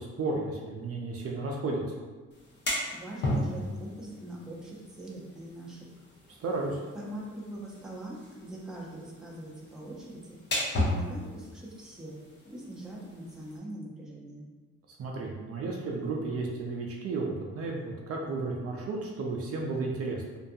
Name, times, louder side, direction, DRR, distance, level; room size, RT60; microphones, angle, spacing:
voice 1, 0.0-1.8 6.4-6.8 15.0-20.4, right 3 dB, 50° right, -1 dB, 0.4 m, -33 dB
sound 1, 2.3-13.6, left 1 dB, 35° left, 0.7 m, -36 dB
voice 2, 2.9-5.9 6.9-10.4 10.9-12.1 12.5-14.5, right 1 dB, ahead, -4 dB, 0.6 m, -42 dB
2.6 x 2.3 x 2.6 m, 1.4 s
cardioid pair, 90°, 30 cm